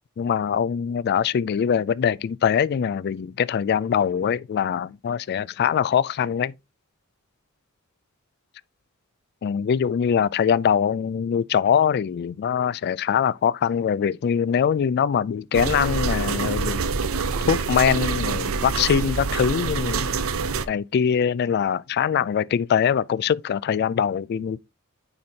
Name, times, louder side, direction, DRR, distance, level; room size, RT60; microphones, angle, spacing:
voice 1, 0.2-6.5 9.4-16.8 17.5-20.1 20.7-24.6, left 7 dB, 50° left, 0.3 m, -23 dB
sound 1, 15.5-20.6, right 4 dB, 80° right, 0.6 m, -26 dB
9.5 x 4.3 x 2.8 m
head